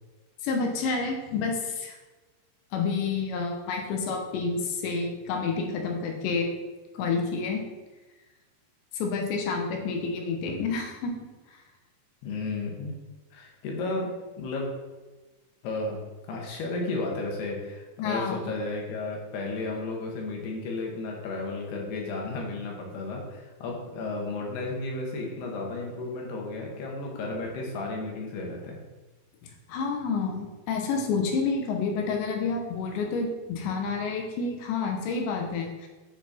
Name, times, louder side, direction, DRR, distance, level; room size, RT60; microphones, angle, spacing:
voice 1, 0.4-1.9 2.7-6.5 6.9-7.6 8.9-11.1 18.0-18.4 29.7-35.9, left 4 dB, 85° left, 2 dB, 3.3 m, -29 dB
voice 2, 12.2-13.0 13.3-14.7 15.6-16.0 16.3-28.8 35.3-35.4, left 2 dB, 70° left, 0 dB, 3.2 m, -33 dB
9.5 x 4.3 x 4.3 m, 1.2 s
omnidirectional pair, 5.1 m